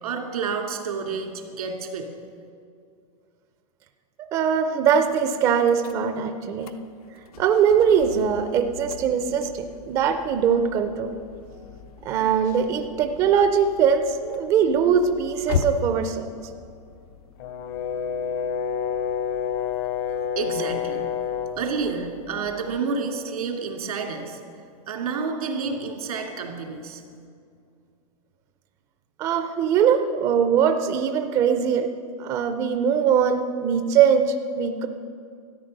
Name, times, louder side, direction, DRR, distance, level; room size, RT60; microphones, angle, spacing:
voice 1, 0.0-2.1 20.4-21.0 21.6-24.4 24.9-27.0, right 5 dB, 90° right, 2 dB, 2.7 m, -29 dB
voice 2, 4.3-6.7 7.4-11.1 12.1-16.3 29.2-31.9 32.2-34.9, right 7 dB, 15° right, 7 dB, 0.4 m, -21 dB
sound 1, 4.8-22.8, left 6 dB, 85° left, 0.8 m, -39 dB
Brass instrument, 17.4-21.6, left 8 dB, 35° left, 0.6 m, -28 dB
13.5 x 9.5 x 6.6 m, 2.3 s
supercardioid pair, 170°, 18 cm